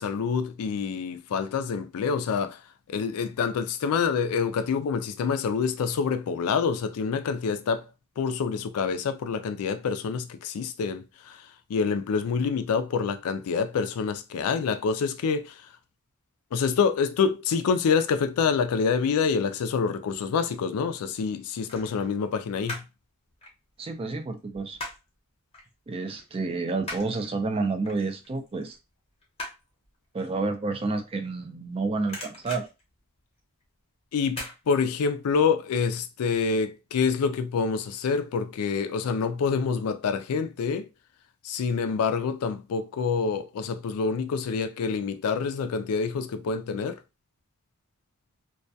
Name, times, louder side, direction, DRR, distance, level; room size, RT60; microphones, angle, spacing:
voice 1, 0.0-2.6 2.9-7.8 8.2-15.7 16.5-22.8 34.1-40.9 41.4-47.0, left 5 dB, 75° left, 0.3 m, -27 dB
sound 1, 20.5-20.8 21.7-23.0 23.3-25.2 25.5-25.7 26.1-31.7 32.0-33.7 34.3-34.6 35.0-35.1, left 2 dB, 25° left, 0.7 m, -41 dB
voice 2, 23.8-24.8 25.9-28.8 30.1-32.7, right 3 dB, 25° right, 0.3 m, -29 dB
2.3 x 2.2 x 2.6 m
head